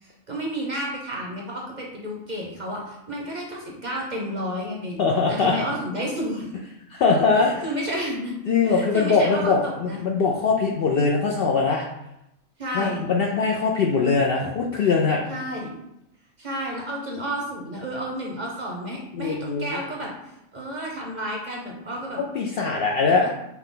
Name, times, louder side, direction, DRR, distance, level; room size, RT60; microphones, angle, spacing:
voice 1, 0.0-6.5 7.4-8.3 8.6-10.0 12.6-13.0 15.3-15.7 16.4-20.1 20.5-22.2 23.2-23.3, equal, 40° right, -2 dB, 0.7 m, -31 dB
voice 2, 5.0-5.5 6.9-7.6 8.5-11.9 12.7-15.2 19.1-19.8 22.3-23.4, left 4 dB, 65° left, -1 dB, 0.6 m, -22 dB
5.7 x 2.2 x 3.7 m, 0.83 s
omnidirectional pair, 1.4 m